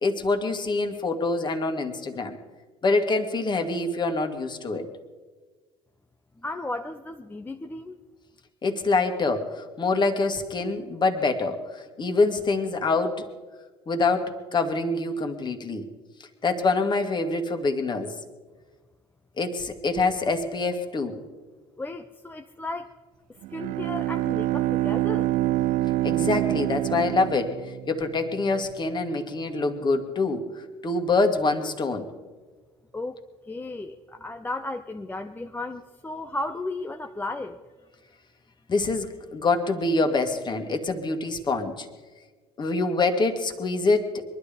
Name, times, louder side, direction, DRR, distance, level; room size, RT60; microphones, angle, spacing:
voice 1, 0.0-2.4 2.8-4.9 8.6-13.3 13.9-15.9 16.4-18.1 19.4-21.2 26.0-32.1 38.7-41.9 42.6-44.4, left 3 dB, 30° left, 6 dB, 2.1 m, -25 dB
voice 2, 6.4-8.0 21.8-22.9 23.5-25.3 32.9-37.6, left 2 dB, 15° left, 5 dB, 0.8 m, -34 dB
Bowed string instrument, 23.4-28.2, right 16 dB, 55° right, 0.5 m, -26 dB
22.5 x 12.0 x 5.2 m, 1.4 s
hypercardioid pair, 65°, 14 cm